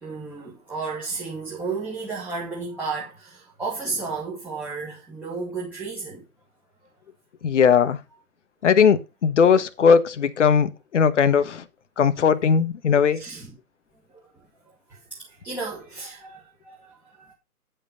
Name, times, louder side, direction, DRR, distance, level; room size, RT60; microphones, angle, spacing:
voice 1, 0.0-6.2 13.1-13.6 14.1-14.2 14.9-17.3, right 4 dB, 5° right, 1.5 m, -33 dB
voice 2, 7.4-8.0 8.6-11.6 12.0-13.2, left 6 dB, 50° left, 1.1 m, -19 dB
9.8 x 5.5 x 5.5 m
hypercardioid pair, 150°, 45 cm